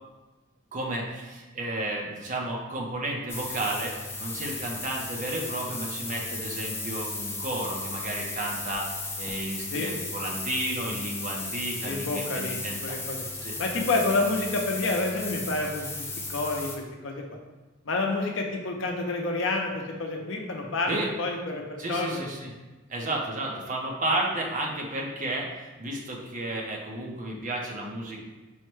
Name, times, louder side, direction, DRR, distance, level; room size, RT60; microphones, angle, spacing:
voice 1, 0.7-8.9 9.2-13.0 13.4-13.6 20.9-21.1 21.8-22.5 22.9-28.2, right 1 dB, 40° right, -1 dB, 0.7 m, -32 dB
sound 1, 3.3-16.8, left 3 dB, 15° left, 0.4 m, -35 dB
voice 2, 11.8-12.5 12.8-13.2 13.6-17.2 17.8-20.9 21.2-22.3, left 2 dB, 70° left, 1 dB, 0.6 m, -29 dB
5.5 x 2.2 x 3.1 m, 1.2 s
head